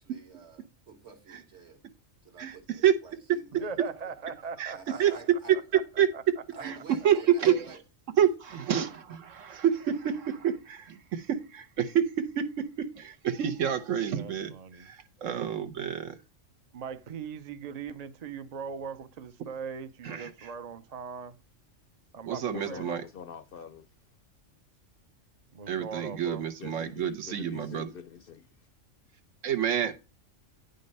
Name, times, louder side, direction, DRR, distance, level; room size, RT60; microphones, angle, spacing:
voice 1, 0.0-1.8 2.2-3.7 4.7-5.5 6.5-7.8, right 4 dB, 60° right, 1.8 m, -50 dB
voice 2, 3.6-5.2 5.7-5.8 6.1-6.2 6.5-6.6 14.1-14.9 16.7-21.4 22.1-23.0 25.5-26.5, right 5 dB, 40° right, 0.6 m, -40 dB
voice 3, 6.6-7.8 8.2-14.5 14.8-16.2 20.0-20.5 22.3-23.0 25.7-27.9 29.4-30.0, right 9 dB, 80° right, 1.3 m, -28 dB
voice 4, 22.5-23.9 26.6-28.7, left 7 dB, 60° left, 0.6 m, -45 dB
9.4 x 5.3 x 5.3 m
omnidirectional pair, 1.3 m